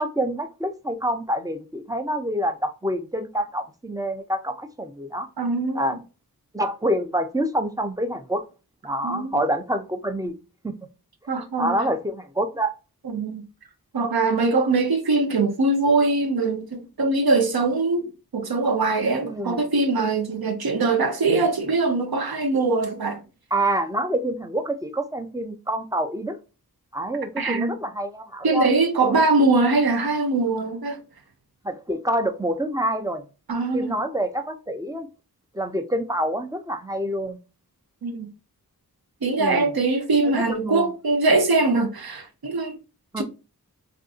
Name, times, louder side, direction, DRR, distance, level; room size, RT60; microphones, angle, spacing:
voice 1, 0.0-5.3 5.7-6.0 6.5-8.4 8.8-10.3 10.6-10.7 11.6-12.7 19.2-19.6 23.5-26.4 26.9-28.7 31.6-33.3 33.7-35.1 35.5-37.4 39.4-39.7 40.2-40.9 43.1-43.2, right 1 dB, 10° right, 0.4 m, -27 dB
voice 2, 5.4-6.0 9.0-9.4 11.3-11.8 13.0-13.4 13.9-18.0 18.3-23.2 27.4-27.7 28.4-31.0 33.5-34.0 38.0-38.3 39.2-42.8 43.2-43.3, right 3 dB, 75° right, 0.7 m, -22 dB
3.6 x 2.5 x 2.4 m
wide cardioid pair, 55°, 37 cm